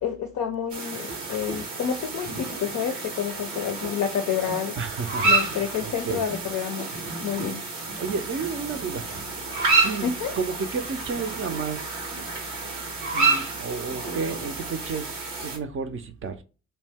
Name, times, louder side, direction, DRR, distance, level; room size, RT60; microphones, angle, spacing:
voice 1, 0.0-4.8 5.2-6.9 7.2-7.6 10.0-10.3, left 8 dB, 50° left, 0.5 m, -29 dB
sound 1, 0.7-15.6, right 3 dB, 90° right, 0.8 m, -29 dB
voice 2, 4.8-6.2 8.0-9.1 9.8-12.4 13.1-16.4, right 5 dB, 35° right, 0.5 m, -32 dB
2.6 x 2.1 x 3.3 m
hypercardioid pair, 50°, 37 cm